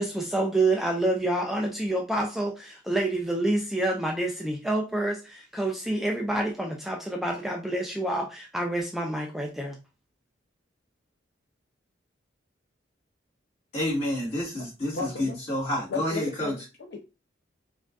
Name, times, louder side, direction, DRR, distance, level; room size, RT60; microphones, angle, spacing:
voice 1, 0.0-9.8, right 1 dB, ahead, 0.3 m, -28 dB
voice 2, 13.7-16.5, left 1 dB, 35° left, 1.8 m, -29 dB
voice 3, 14.9-15.3 15.9-17.0, left 4 dB, 60° left, 0.5 m, -34 dB
4.7 x 2.5 x 2.3 m
head